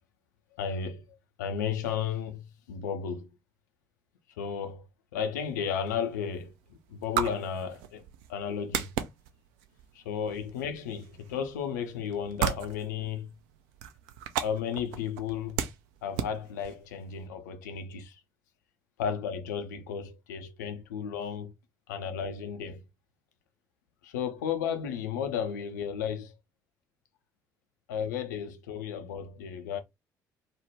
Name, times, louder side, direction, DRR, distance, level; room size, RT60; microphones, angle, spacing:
voice 1, 0.6-1.0 1.4-3.3 4.4-4.8 5.1-8.0 8.3-8.9 10.0-13.3 14.4-15.6 16.0-18.2 19.0-21.5 21.9-22.8 24.0-26.3 27.9-29.8, left 7 dB, 75° left, 0.5 m, -33 dB
sound 1, 5.5-17.3, right 9 dB, 65° right, 0.4 m, -37 dB
2.4 x 2.1 x 3.1 m
figure-of-eight pair, 50°, 10 cm